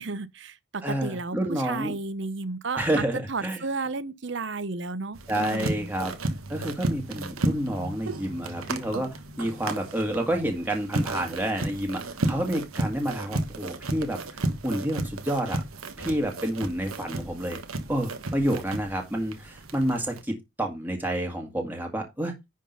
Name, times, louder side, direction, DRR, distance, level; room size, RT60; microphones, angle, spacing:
voice 1, 0.0-3.0 3.3-5.9, right 3 dB, 55° right, 0.7 m, -33 dB
voice 2, 0.8-1.9 2.7-3.6 5.3-6.1 6.5-15.6 16.0-17.6 17.9-22.3, right 1 dB, 10° right, 1.8 m, -29 dB
sound 1, 5.1-20.2, right 2 dB, 85° right, 1.2 m, -33 dB
10.5 x 3.7 x 5.3 m
head